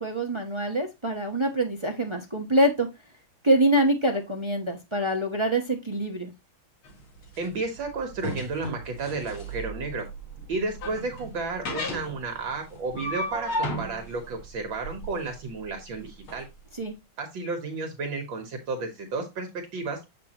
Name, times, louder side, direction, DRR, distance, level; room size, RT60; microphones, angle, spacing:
voice 1, 0.0-2.9 3.4-6.3 16.7-16.9, right 1 dB, 30° right, 3 dB, 0.5 m, -25 dB
sound 1, 6.8-16.4, left 1 dB, 80° left, 2.8 m, -35 dB
voice 2, 7.4-10.1 10.5-16.5 17.2-20.0, right 3 dB, 70° right, 4 dB, 1.9 m, -32 dB
7.5 x 5.8 x 2.9 m, 0.23 s
omnidirectional pair, 2.3 m